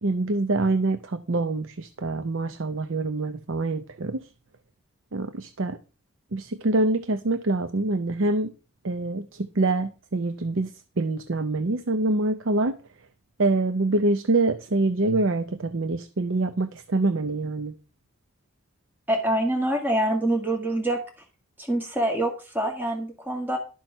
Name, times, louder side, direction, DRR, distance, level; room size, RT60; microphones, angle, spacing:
voice 1, 0.0-4.2 5.1-5.8 6.3-8.5 8.8-10.7 11.0-12.8 13.4-17.7, right 2 dB, 65° right, 0.6 m, -25 dB
voice 2, 19.1-21.0 21.6-23.6, right 1 dB, 10° right, 1.8 m, -25 dB
12.0 x 6.0 x 5.5 m
head